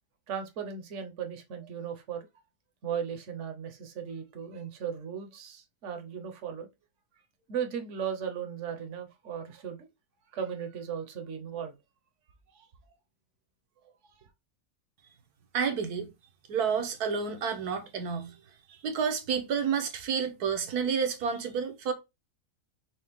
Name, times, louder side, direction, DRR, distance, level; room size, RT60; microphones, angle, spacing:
voice 1, 0.3-2.3 2.8-6.7 7.5-9.9 10.3-11.7 12.5-12.7 14.0-14.3, right 7 dB, 50° right, 1.1 m, -37 dB
voice 2, 15.5-16.1 16.5-18.3 18.8-21.9, right 6 dB, 70° right, 1.4 m, -30 dB
5.8 x 2.4 x 3.5 m
omnidirectional pair, 1.7 m